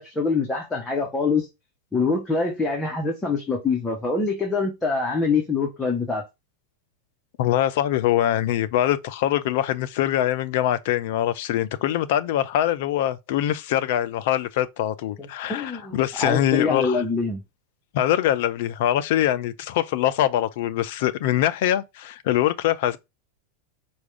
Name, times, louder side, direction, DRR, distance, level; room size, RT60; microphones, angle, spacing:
voice 1, 0.0-1.5 1.9-6.2 15.2-17.4, left 4 dB, 10° left, 1.0 m, -25 dB
voice 2, 7.4-17.0 17.9-23.0, left 12 dB, 50° left, 0.4 m, -23 dB
4.7 x 2.3 x 3.3 m
figure-of-eight pair, 90°, 0 cm